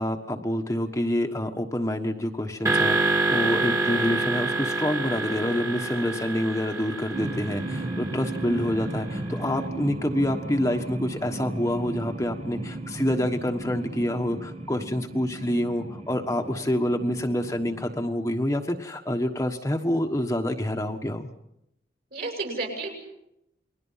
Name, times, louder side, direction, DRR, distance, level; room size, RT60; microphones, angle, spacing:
voice 1, 0.0-21.3, left 1 dB, 15° left, 3 dB, 1.3 m, -27 dB
sound 1, 2.6-9.0, right 2 dB, 15° right, 2.0 m, -27 dB
sound 2, 7.1-18.0, right 2 dB, 35° right, 1.2 m, -35 dB
voice 2, 22.1-22.9, right 3 dB, 55° right, 3 dB, 7.1 m, -32 dB
29.5 x 21.5 x 5.7 m, 0.79 s
head